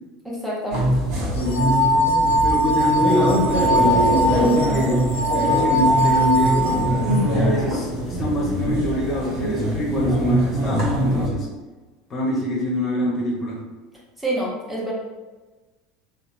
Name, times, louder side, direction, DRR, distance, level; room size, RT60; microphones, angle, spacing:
voice 1, 0.2-0.8 14.2-14.9, right 1 dB, 5° right, -5 dB, 0.9 m, -27 dB
sound 1, 0.7-11.3, equal, 55° right, 0.8 m, -23 dB
voice 2, 1.3-1.8 2.4-5.0 5.3-6.8 7.3-11.5 12.1-13.6, equal, 30° left, -3 dB, 0.7 m, -24 dB
sound 2, 1.4-7.2, equal, 75° left, 0.3 m, -21 dB
2.7 x 2.1 x 2.8 m, 1.2 s
hypercardioid pair, 75°, 0 cm